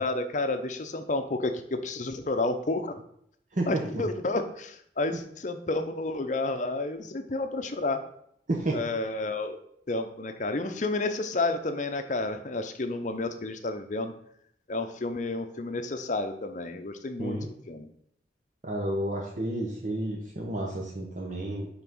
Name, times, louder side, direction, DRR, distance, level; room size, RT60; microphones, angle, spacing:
voice 1, 0.0-3.0 3.7-8.0 8.7-9.6 9.9-14.1 14.7-17.4 17.7-17.9, left 2 dB, 45° left, 8 dB, 0.7 m, -30 dB
voice 2, 3.5-4.0 8.5-8.8 17.2-17.5 18.6-21.7, right 1 dB, 45° right, 0 dB, 0.9 m, -31 dB
5.7 x 4.0 x 6.1 m, 0.70 s
head